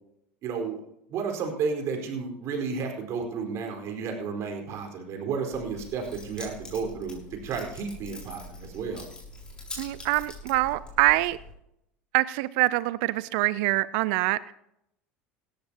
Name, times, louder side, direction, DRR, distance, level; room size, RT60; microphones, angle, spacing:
voice 1, 0.4-0.8 1.1-9.0, right 5 dB, 50° right, 3 dB, 4.6 m, -32 dB
Keys jangling, 5.5-11.5, left 2 dB, 15° left, 6.5 m, -44 dB
voice 2, 9.8-11.4 12.1-14.5, right 19 dB, 65° right, 17 dB, 0.5 m, -25 dB
17.5 x 13.5 x 2.9 m, 0.78 s
hypercardioid pair, 90°, 6 cm